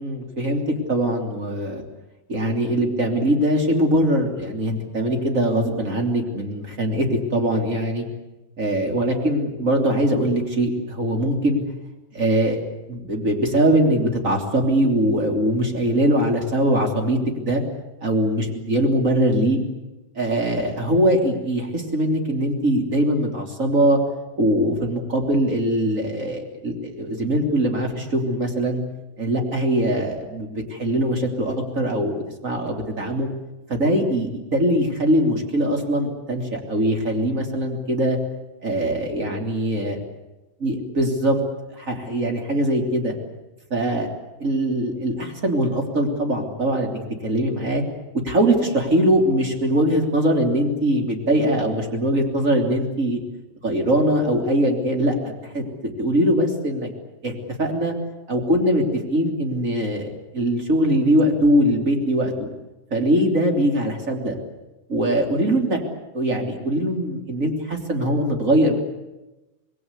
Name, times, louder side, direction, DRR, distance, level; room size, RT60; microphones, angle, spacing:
voice 1, 0.0-1.8 2.3-8.0 8.6-11.6 12.1-12.6 12.9-17.6 18.0-19.6 20.1-24.0 24.4-28.8 29.2-32.2 32.4-33.3 33.7-38.2 38.6-40.0 40.6-41.4 41.8-43.1 43.7-44.1 44.4-47.8 48.2-53.2 53.6-55.6 56.0-56.9 57.2-57.9 58.3-60.1 60.3-62.5 62.9-64.4 64.9-65.8 66.1-68.8, right 1 dB, 20° right, 3 dB, 2.8 m, -22 dB
26.5 x 20.5 x 8.1 m, 1.0 s
omnidirectional pair, 5.0 m